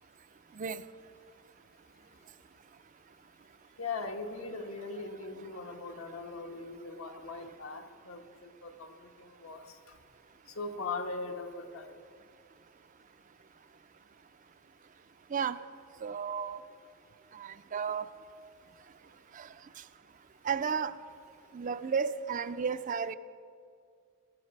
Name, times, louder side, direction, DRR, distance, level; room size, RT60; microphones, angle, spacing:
voice 1, 3.8-10.0 10.5-11.9, left 3 dB, 85° left, 4 dB, 1.2 m, -40 dB
voice 2, 16.0-16.6 17.3-18.1 19.3-19.5 19.8-19.9 20.4-20.9 21.5-23.2, right 6 dB, 40° right, 12 dB, 0.4 m, -33 dB
17.5 x 12.0 x 5.3 m, 2.3 s
head